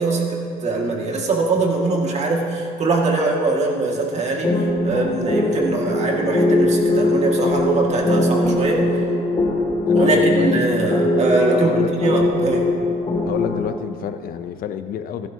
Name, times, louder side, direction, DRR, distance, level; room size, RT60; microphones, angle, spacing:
voice 1, 0.0-8.9 9.9-12.7, right 2 dB, 40° right, -1 dB, 1.9 m, -22 dB
sound 1, 4.4-13.7, left 1 dB, 30° left, 1.8 m, -21 dB
voice 2, 9.8-10.7 11.5-12.0 13.2-15.3, left 9 dB, 60° left, 10 dB, 0.6 m, -29 dB
14.5 x 12.0 x 2.8 m, 2.4 s
cardioid pair, 110°, 17 cm